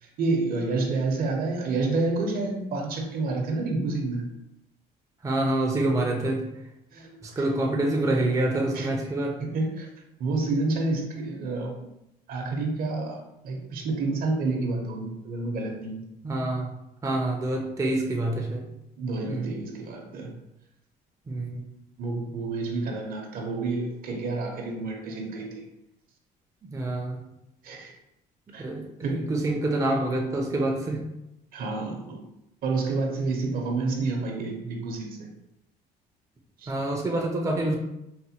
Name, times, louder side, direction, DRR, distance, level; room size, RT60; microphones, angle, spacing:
voice 1, 0.0-4.3 6.9-7.5 8.7-8.9 9.4-9.9 10.2-11.8 12.3-16.0 19.0-20.3 22.0-25.6 27.6-27.9 28.5-28.7 29.0-29.3 31.5-32.2 32.6-35.3 36.6-36.7, right 3 dB, 60° right, 2 dB, 0.7 m, -29 dB
voice 2, 5.2-6.4 7.2-9.4 16.2-16.7 17.0-18.7 19.3-19.5 21.3-21.6 26.7-27.2 28.6-31.0 36.7-37.8, right 2 dB, 20° right, 1 dB, 0.5 m, -26 dB
4.1 x 2.1 x 2.8 m, 0.87 s
cardioid pair, 110°, 17 cm